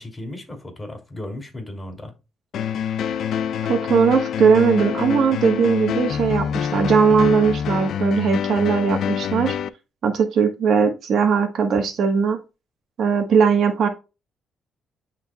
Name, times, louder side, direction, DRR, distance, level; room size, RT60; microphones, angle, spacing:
voice 1, 0.0-2.1, left 1 dB, 15° left, 2.8 m, -35 dB
sound 1, 2.5-9.7, left 8 dB, 70° left, 0.5 m, -26 dB
voice 2, 3.7-9.5 10.0-12.4 13.0-13.9, right 6 dB, 65° right, 1.2 m, -19 dB
11.5 x 3.9 x 2.3 m
cardioid pair, 90°, 0 cm